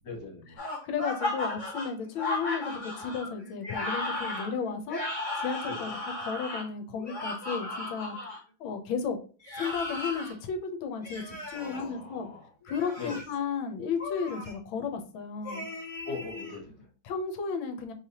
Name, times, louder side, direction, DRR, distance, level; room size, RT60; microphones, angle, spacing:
voice 1, 0.1-0.6 5.6-5.8 11.5-12.5 13.0-13.2 16.1-16.9, left 4 dB, 55° left, 0 dB, 2.0 m, -40 dB
sound 1, 0.6-8.4 9.4-10.3 11.0-11.8 12.6-13.3 14.0-14.5 15.4-16.6, left 2 dB, 35° left, 1.9 m, -35 dB
voice 2, 0.8-5.0 5.4-8.2 8.6-9.2 9.6-12.3 12.6-15.7 17.0-17.9, left 6 dB, 75° left, 6 dB, 1.5 m, -34 dB
5.0 x 3.3 x 2.8 m, 0.37 s
omnidirectional pair, 2.3 m